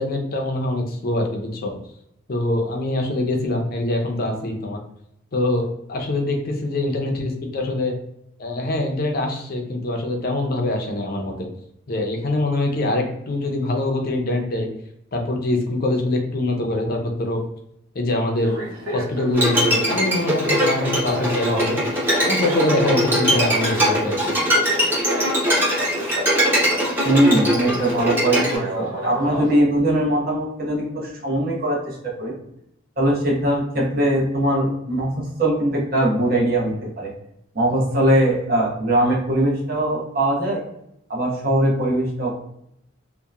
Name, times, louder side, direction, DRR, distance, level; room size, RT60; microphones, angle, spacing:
voice 1, 0.0-1.8 2.3-4.8 5.3-8.0 8.4-11.5 11.9-14.7 15.1-17.4 17.9-18.6 18.9-21.8 22.2-24.3, left 1 dB, 45° left, 2 dB, 0.5 m, -24 dB
sound 1, 18.4-29.6, equal, 85° right, 0.9 m, -31 dB
Bowed string instrument, 19.3-28.6, equal, 10° right, 0.7 m, -21 dB
voice 2, 27.0-32.4 33.0-37.1 37.5-40.6 41.1-42.4, right 1 dB, 45° right, -3 dB, 0.8 m, -21 dB
2.7 x 2.1 x 2.3 m, 0.78 s
head